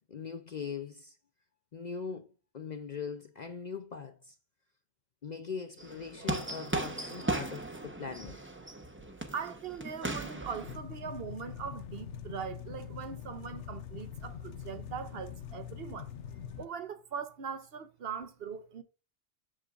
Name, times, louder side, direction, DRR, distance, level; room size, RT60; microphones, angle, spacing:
voice 1, 0.1-1.2 1.7-2.3 2.5-4.3 5.2-8.4, left 5 dB, 50° left, 0.6 m, -41 dB
sound 1, 5.8-10.8, right 2 dB, 10° right, 0.7 m, -37 dB
voice 2, 9.3-18.8, right 6 dB, 60° right, 0.9 m, -41 dB
sound 2, 10.6-16.7, left 9 dB, 75° left, 1.0 m, -44 dB
7.4 x 6.6 x 2.5 m
omnidirectional pair, 1.2 m